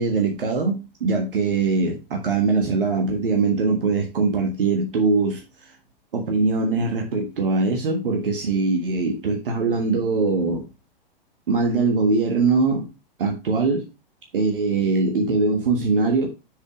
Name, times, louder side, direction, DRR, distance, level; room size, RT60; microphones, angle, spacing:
voice 1, 0.0-5.7 6.1-10.7 11.5-12.9 13.2-13.8 14.3-16.3, right 3 dB, 65° right, 2 dB, 1.6 m, -22 dB
6.9 x 4.9 x 5.1 m, 0.29 s
figure-of-eight pair, 110°, 30 cm